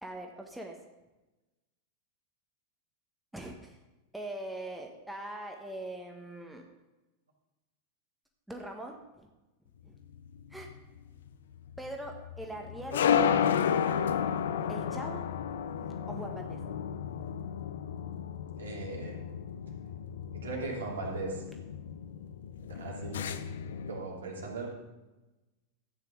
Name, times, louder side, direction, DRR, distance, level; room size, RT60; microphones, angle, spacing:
voice 1, 0.0-0.8 3.3-3.8 4.1-6.6 8.5-9.3 9.8-9.9 10.5-10.7 11.8-13.0 14.7-15.2 15.8-16.6, right 1 dB, 5° right, 2 dB, 1.3 m, -42 dB
sound 1, 9.9-24.0, left 8 dB, 60° left, 0.6 m, -33 dB
voice 2, 18.6-19.2 20.4-21.4 22.7-23.2 23.9-24.7, right 3 dB, 70° right, -2 dB, 2.8 m, -38 dB
13.5 x 9.0 x 3.9 m, 1.1 s
figure-of-eight pair, 90°, 0 cm